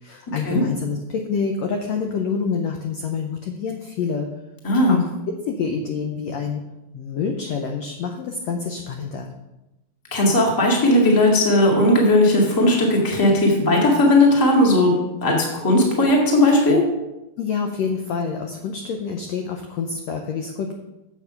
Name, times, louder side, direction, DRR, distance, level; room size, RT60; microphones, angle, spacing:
voice 1, 0.0-4.3 4.9-5.1 5.4-6.6 6.9-9.3 17.4-20.8, left 5 dB, 85° left, 4 dB, 1.5 m, -27 dB
voice 2, 4.6-5.0 10.1-15.0 15.2-16.8, left 1 dB, 15° left, -1 dB, 0.8 m, -17 dB
8.2 x 7.3 x 5.7 m, 0.99 s
omnidirectional pair, 4.0 m